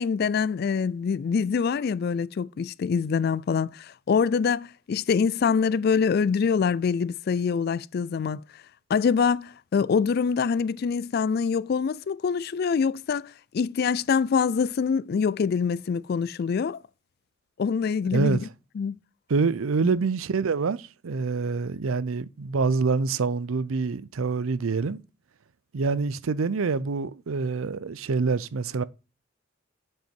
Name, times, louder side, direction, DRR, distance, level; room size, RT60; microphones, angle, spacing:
voice 1, 0.0-8.4 8.9-16.8 17.6-18.4 18.8-19.0 19.8-20.0, left 6 dB, 50° left, 0.3 m, -25 dB
voice 2, 18.1-18.5 19.3-25.0 25.7-28.8, right 4 dB, 85° right, 0.5 m, -26 dB
7.7 x 5.5 x 4.4 m
head